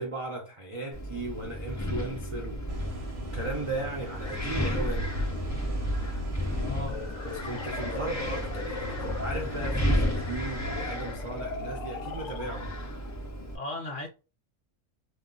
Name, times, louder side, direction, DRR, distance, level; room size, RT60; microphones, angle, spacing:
voice 1, 0.0-5.1 7.2-12.7, right 2 dB, 45° right, 0.4 m, -36 dB
Wind, 0.9-13.6, equal, 30° left, 0.3 m, -33 dB
sound 1, 2.7-10.9, equal, 65° right, 0.9 m, -39 dB
voice 2, 6.6-7.0 13.5-14.1, left 2 dB, 50° left, 0.8 m, -36 dB
sound 2, 6.7-13.2, left 6 dB, 80° left, 0.9 m, -40 dB
2.3 x 2.2 x 3.7 m
omnidirectional pair, 1.3 m